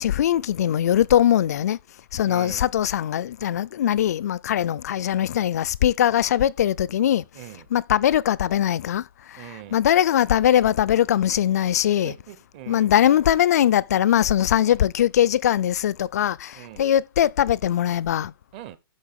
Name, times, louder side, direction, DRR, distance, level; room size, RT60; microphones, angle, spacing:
voice 1, 0.0-1.8 2.1-7.2 7.7-12.1 12.7-18.3, left 11 dB, 45° left, 0.4 m, -21 dB
voice 2, 2.3-2.7 7.3-7.7 9.4-9.8 11.9-12.9 16.5-16.9 18.5-18.8, right 12 dB, 25° right, 0.7 m, -42 dB
12.0 x 4.5 x 3.5 m
hypercardioid pair, 165°, 13 cm